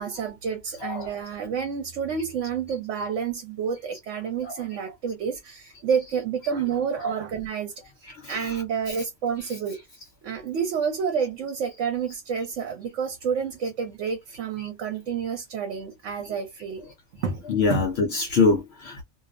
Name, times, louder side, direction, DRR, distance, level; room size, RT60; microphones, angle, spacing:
voice 1, 0.0-7.7 8.3-9.8 10.2-16.8 17.2-17.4 17.7-17.8, right 6 dB, 75° right, 1.0 m, -29 dB
voice 2, 8.2-8.6 17.4-19.0, left 4 dB, 65° left, 0.8 m, -24 dB
2.6 x 2.0 x 2.3 m
omnidirectional pair, 1.3 m